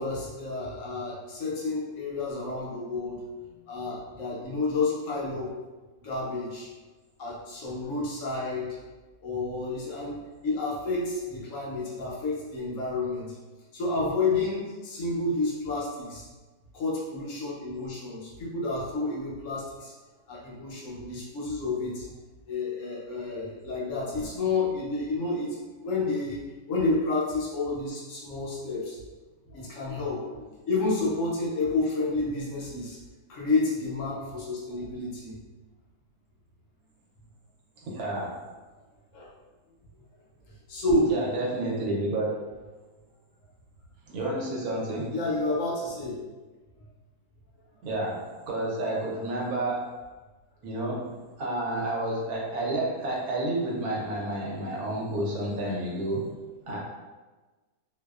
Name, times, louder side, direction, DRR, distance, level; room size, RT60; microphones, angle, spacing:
voice 1, 0.0-3.3 3.7-5.5 6.0-6.7 7.2-8.8 9.2-13.4 13.7-16.3 16.7-19.9 20.3-22.1 22.5-26.4 26.7-29.0 29.5-33.0 33.3-35.4 39.1-39.3 40.7-41.1 45.1-46.2, left 3 dB, 70° left, -4 dB, 0.8 m, -30 dB
voice 2, 37.8-38.4 41.1-42.3 44.1-45.1 47.8-49.9 50.6-56.3 56.7-56.8, right 1 dB, 75° right, -3 dB, 1.1 m, -30 dB
2.6 x 2.1 x 2.3 m, 1.2 s
omnidirectional pair, 1.7 m